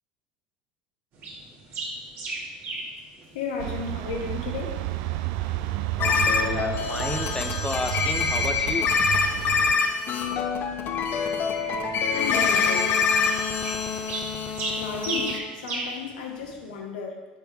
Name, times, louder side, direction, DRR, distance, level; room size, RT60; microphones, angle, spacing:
sound 1, 1.1-16.8, right 2 dB, 55° right, 2.0 m, -39 dB
voice 1, 3.3-4.8 12.1-13.1 13.8-14.3 14.8-17.3, left 5 dB, 80° left, 2 dB, 1.1 m, -34 dB
sound 2, 3.6-9.7, right 15 dB, 70° right, 0.3 m, -31 dB
sound 3, 6.0-15.4, left 5 dB, 50° left, 0.7 m, -25 dB
voice 2, 6.4-9.1, left 3 dB, 15° left, 7 dB, 0.5 m, -32 dB
7.9 x 4.6 x 3.5 m, 1.2 s
hypercardioid pair, 80°, 5 cm